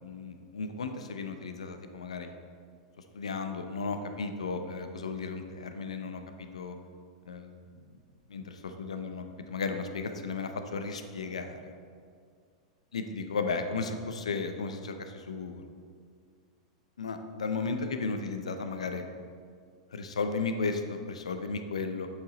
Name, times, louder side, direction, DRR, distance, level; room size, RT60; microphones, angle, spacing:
voice 1, 0.0-2.3 3.1-6.7 7.3-7.6 8.3-11.7 12.9-15.6 17.0-19.0 19.9-22.1, left 4 dB, 85° left, 7 dB, 0.6 m, -34 dB
8.0 x 5.0 x 3.9 m, 2.2 s
hypercardioid pair, 105°, 3 cm